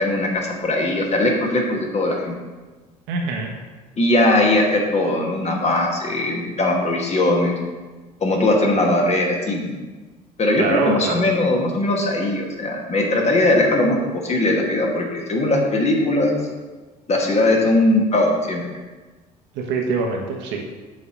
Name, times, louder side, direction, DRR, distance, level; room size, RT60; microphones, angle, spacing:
voice 1, 0.0-2.4 4.0-7.5 8.2-9.8 10.4-16.3 17.1-18.6, left 2 dB, 30° left, 0 dB, 1.6 m, -20 dB
voice 2, 3.1-3.5 10.6-11.2 19.5-20.6, right 4 dB, 60° right, 1 dB, 1.2 m, -24 dB
7.4 x 4.2 x 5.0 m, 1.3 s
figure-of-eight pair, 60°, 21 cm